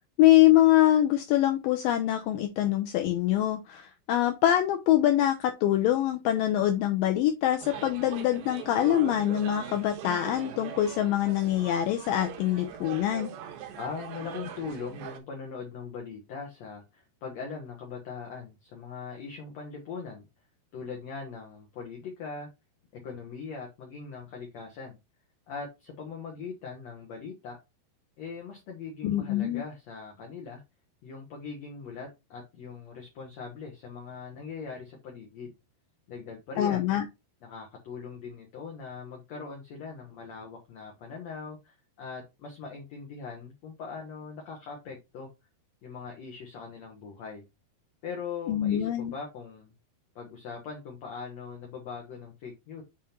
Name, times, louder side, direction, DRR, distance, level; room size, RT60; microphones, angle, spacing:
voice 1, 0.2-13.3 29.0-29.6 36.6-37.0 48.5-49.1, left 13 dB, 90° left, 6 dB, 2.0 m, -24 dB
sound 1, 7.6-15.2, right 9 dB, 85° right, 3.1 m, -41 dB
voice 2, 13.8-20.2 20.7-22.5 22.9-25.0 25.5-27.6 28.2-30.6 31.0-35.5 36.1-36.9 37.4-45.3 45.8-47.4 48.0-49.7 50.2-52.8, left 5 dB, 60° left, 0 dB, 1.8 m, -40 dB
7.4 x 3.6 x 4.3 m, 0.24 s
omnidirectional pair, 4.7 m